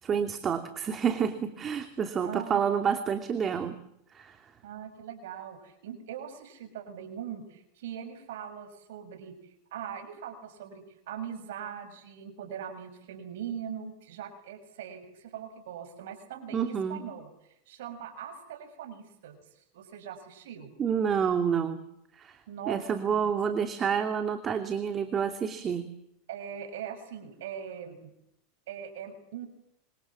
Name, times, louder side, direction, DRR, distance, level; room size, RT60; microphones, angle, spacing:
voice 1, 0.0-3.8 4.1-4.4 16.5-17.0 20.8-21.8 22.2-22.4 22.7-25.9, right 7 dB, 25° right, 7 dB, 2.7 m, -29 dB
voice 2, 2.2-2.8 4.6-20.7 22.5-23.3 26.3-28.1 28.7-29.5, right 8 dB, 80° right, 8 dB, 6.9 m, -41 dB
28.0 x 26.5 x 7.4 m, 0.77 s
supercardioid pair, 130°, 0 cm